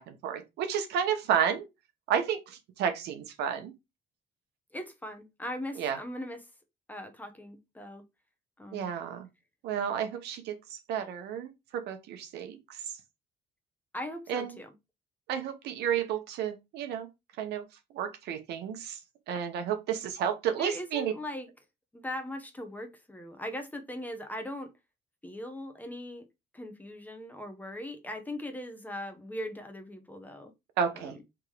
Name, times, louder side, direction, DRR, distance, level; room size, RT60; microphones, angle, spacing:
voice 1, 0.0-1.7 2.1-3.7 5.8-6.0 8.7-9.3 9.6-13.0 14.3-14.6 15.3-17.1 17.4-17.6 17.9-19.0 19.3-21.1 30.8-31.2, right 8 dB, 80° right, 1.0 m, -31 dB
voice 2, 4.7-6.4 6.9-8.0 8.6-8.9 13.9-14.7 20.5-21.5 21.9-24.7 25.2-26.3 26.5-30.5 30.9-31.2, left 1 dB, 10° left, 0.9 m, -39 dB
3.7 x 2.9 x 4.8 m
cardioid pair, 110°, 17 cm